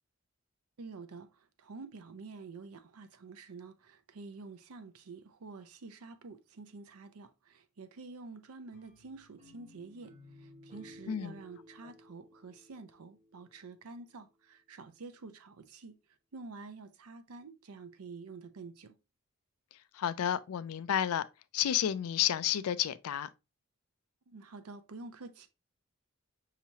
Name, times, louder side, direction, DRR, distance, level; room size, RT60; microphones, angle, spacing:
voice 1, 0.8-16.0 16.3-19.0 24.3-25.5, right 3 dB, 90° right, 0.6 m, -48 dB
sound 1, 8.7-13.8, left 1 dB, 25° right, 1.4 m, -57 dB
voice 2, 11.1-11.4 19.9-21.2 21.5-23.3, left 10 dB, 80° left, 0.4 m, -31 dB
5.6 x 2.9 x 2.8 m
head